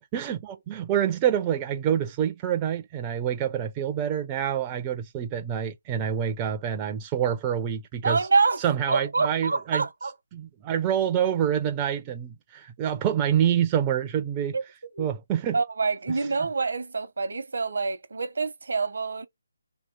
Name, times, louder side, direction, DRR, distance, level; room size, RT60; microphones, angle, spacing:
voice 1, 0.1-8.2 8.6-9.8 10.3-14.5 15.0-15.6, right 9 dB, 20° right, 0.4 m, -26 dB
voice 2, 8.0-10.1 14.5-14.6 14.9-15.1 15.5-19.3, right 4 dB, 70° right, 0.8 m, -26 dB
2.8 x 2.7 x 3.9 m
figure-of-eight pair, 160°, 0 cm